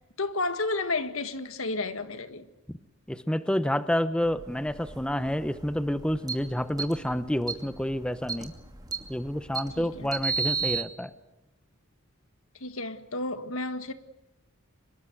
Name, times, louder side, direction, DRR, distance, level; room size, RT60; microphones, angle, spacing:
voice 1, 0.2-2.5 9.8-10.1 12.6-13.9, left 3 dB, 70° left, 1.7 m, -31 dB
voice 2, 3.1-8.5 9.1-11.1, equal, 5° left, 0.8 m, -29 dB
sound 1, 4.3-10.8, right 5 dB, 20° right, 2.5 m, -35 dB
25.0 x 22.5 x 7.8 m
head